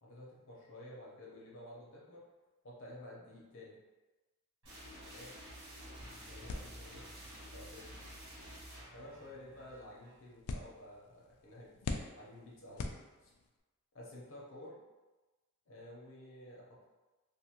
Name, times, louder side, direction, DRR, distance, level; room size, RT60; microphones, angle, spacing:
voice 1, 0.0-2.2 2.6-3.8 5.0-5.4 5.9-7.1 7.5-7.9 8.9-13.0 13.2-13.3 13.9-14.8 15.7-16.9, left 1 dB, 60° left, -5 dB, 0.8 m, -52 dB
sound 1, 4.6-10.3, equal, 65° right, 1.0 m, -51 dB
sound 2, 6.0-11.3, right 1 dB, 45° right, 0.4 m, -61 dB
sound 3, 6.5-13.6, left 3 dB, 80° left, 0.3 m, -46 dB
2.6 x 2.5 x 2.9 m, 1.2 s
head